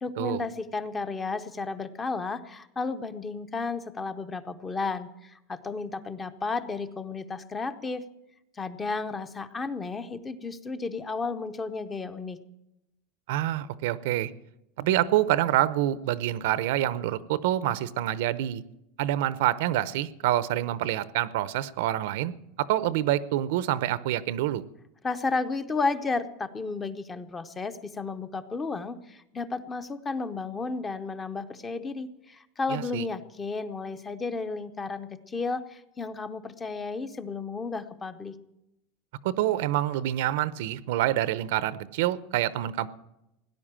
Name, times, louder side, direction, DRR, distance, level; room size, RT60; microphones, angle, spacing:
voice 1, 0.0-8.0 8.6-12.4 25.0-38.3, left 4 dB, 15° left, 11 dB, 0.7 m, -33 dB
voice 2, 13.3-14.3 14.8-18.6 19.0-22.3 22.6-24.6 32.7-33.0 39.2-42.9, right 13 dB, 60° right, 17 dB, 0.7 m, -27 dB
17.5 x 10.5 x 7.4 m, 0.89 s
supercardioid pair, 175°, 0 cm